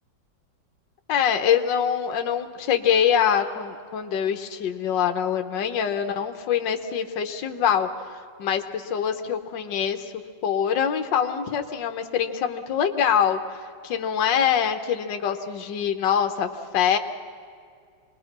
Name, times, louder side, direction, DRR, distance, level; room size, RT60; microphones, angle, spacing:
voice 1, 1.1-7.9 8.4-10.1 10.4-13.4 13.8-17.0, left 8 dB, 70° left, 6 dB, 1.7 m, -24 dB
25.5 x 20.5 x 6.0 m, 2.3 s
omnidirectional pair, 2.1 m